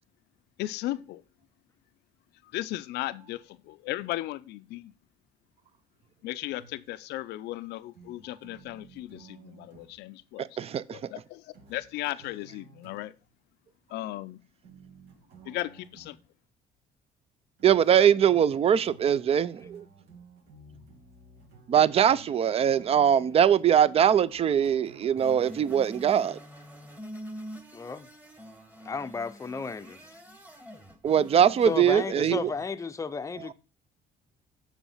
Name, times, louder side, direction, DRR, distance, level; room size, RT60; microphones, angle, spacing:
voice 1, 0.6-1.2 2.5-4.9 6.2-10.5 10.9-11.4 11.7-13.1 13.9-14.4 15.5-16.2, left 16 dB, 80° left, 0.4 m, -36 dB
sound 1, 6.6-7.0 7.9-10.0 11.5-13.3 14.6-16.3 17.6-25.4, right 4 dB, 75° right, 2.2 m, -54 dB
voice 2, 10.4-11.0 17.6-19.8 21.7-26.4 31.0-32.5, right 9 dB, 35° right, 0.5 m, -22 dB
sound 2, 25.2-32.0, equal, 10° right, 1.4 m, -46 dB
voice 3, 27.7-28.1 28.8-30.2 31.7-33.5, left 4 dB, 20° left, 0.6 m, -33 dB
7.2 x 5.7 x 5.5 m
cardioid pair, 110°, 17 cm